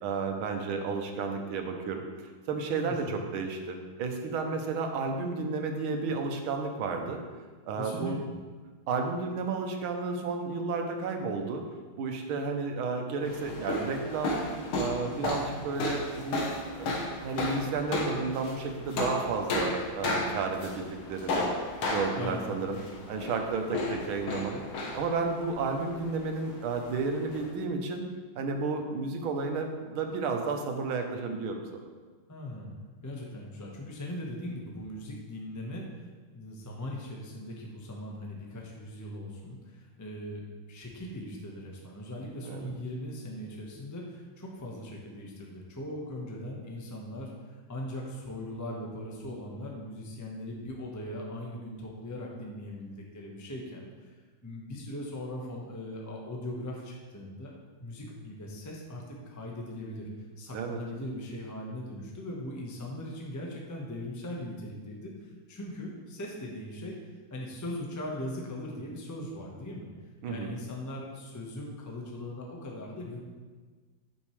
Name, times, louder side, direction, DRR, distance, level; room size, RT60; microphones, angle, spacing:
voice 1, 0.0-2.0 2.5-7.2 7.6-8.2 8.9-11.6 12.0-14.4 14.7-16.4 16.8-16.9 17.2-21.5 21.9-22.8 23.1-24.6 24.9-28.0 28.4-31.9 42.4-42.6 60.5-60.8 70.2-70.5, right 4 dB, 80° right, 4 dB, 1.6 m, -32 dB
voice 2, 2.8-3.2 7.8-8.1 22.2-22.7 32.3-36.1 36.3-54.2 54.4-57.5 57.8-67.0 67.3-69.9 70.3-73.2, left 1 dB, 20° left, -1 dB, 0.5 m, -40 dB
sound 1, 13.2-27.5, left 2 dB, 90° left, 2.0 m, -34 dB
8.7 x 6.3 x 3.2 m, 1.4 s
omnidirectional pair, 2.3 m